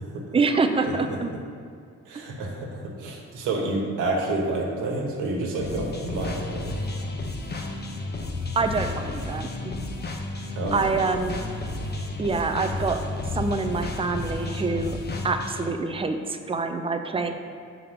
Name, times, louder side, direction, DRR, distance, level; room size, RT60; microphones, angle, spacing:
voice 1, 0.3-1.3 2.1-2.2 8.6-9.8 10.7-11.5 12.2-13.0 13.3-15.0 15.2-17.3, right 4 dB, 20° right, 6 dB, 0.5 m, -26 dB
voice 2, 2.1-6.7 10.5-11.0, right 2 dB, 90° right, -1 dB, 1.4 m, -29 dB
sound 1, 5.6-15.7, left 2 dB, 35° left, 0.9 m, -32 dB
7.0 x 4.2 x 5.5 m, 2.3 s
cardioid pair, 90°, 30 cm